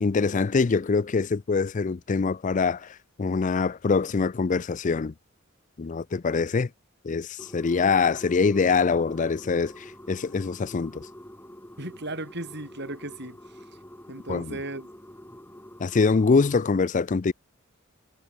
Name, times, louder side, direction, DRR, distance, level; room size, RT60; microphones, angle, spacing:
voice 1, 0.0-5.1 5.8-6.7 7.0-11.1 14.3-14.6 15.8-17.3, left 4 dB, 40° left, 0.4 m, -24 dB
sound 1, 7.4-16.5, equal, 10° left, 5.2 m, -47 dB
voice 2, 11.8-13.4 14.1-14.9, right 2 dB, 60° right, 5.8 m, -36 dB
head